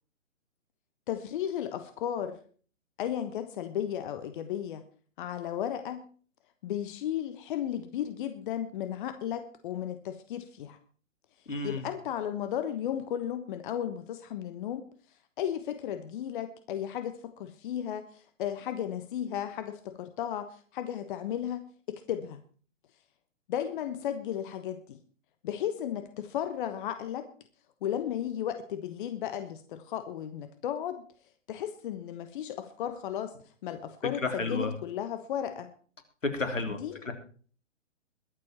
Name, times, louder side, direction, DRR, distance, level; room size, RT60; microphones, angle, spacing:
voice 1, 1.1-2.4 3.0-4.8 5.2-6.0 6.6-10.8 11.6-14.8 15.4-22.4 23.5-25.0 25.4-27.3 27.8-31.1 31.5-35.7 36.7-37.0, left 10 dB, 40° left, 11 dB, 1.3 m, -34 dB
voice 2, 11.5-11.9 34.0-34.7 36.2-36.8 37.1-37.2, left 3 dB, 80° left, 6 dB, 3.6 m, -31 dB
22.5 x 7.6 x 4.4 m, 0.42 s
figure-of-eight pair, 125°, 38 cm